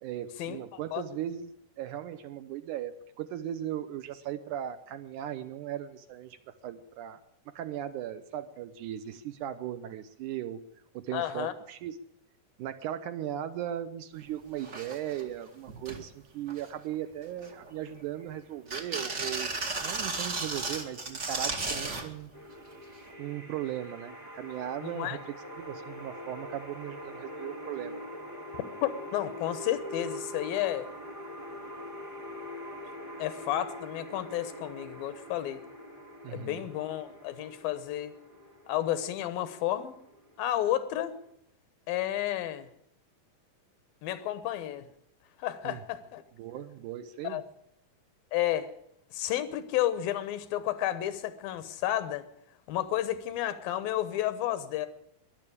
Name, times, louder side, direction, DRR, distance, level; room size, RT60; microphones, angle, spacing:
voice 1, 0.0-6.4 6.6-7.2 7.6-10.6 10.9-12.0 12.6-19.5 19.8-22.3 23.2-28.0 36.2-36.6 45.6-45.8 46.4-47.4, right 11 dB, 75° right, 10 dB, 1.9 m, -38 dB
voice 2, 11.1-11.5 24.8-25.2 28.8-30.9 33.2-35.6 36.3-38.1 38.7-40.0 40.4-41.1 41.9-42.7 44.0-44.9 45.4-46.2 47.2-47.4 48.3-48.7 49.1-52.2 52.7-54.9, left 12 dB, 85° left, 13 dB, 2.8 m, -31 dB
sound 1, 14.2-14.3 14.6-15.2 15.7-16.0 16.5-16.9 17.4-18.2 18.7-22.1 23.1-23.2, right 3 dB, 45° right, 0.9 m, -34 dB
sound 2, 22.3-41.3, left 1 dB, 10° left, 1.0 m, -44 dB
13.5 x 11.0 x 8.4 m, 0.75 s
omnidirectional pair, 4.1 m